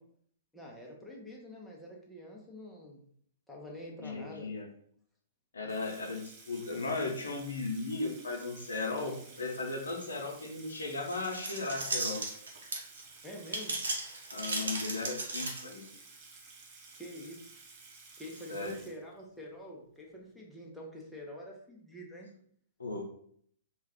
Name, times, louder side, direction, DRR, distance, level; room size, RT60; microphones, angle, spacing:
voice 1, 0.5-3.0 3.5-4.5 13.2-13.8 16.9-17.6 18.2-22.3, equal, 5° left, -3 dB, 0.7 m, -46 dB
voice 2, 4.0-4.7 5.5-12.2 14.3-15.8 18.5-18.7 22.8-23.0, left 3 dB, 90° left, 2 dB, 0.6 m, -36 dB
Water tap faucet / Sink (filling or washing), 5.7-19.4, right 4 dB, 35° right, 0.6 m, -54 dB
sound 1, 11.1-13.0 13.4-15.9, right 2 dB, 80° right, 0.7 m, -35 dB
2.3 x 2.3 x 3.4 m, 0.62 s
hypercardioid pair, 120°, 0 cm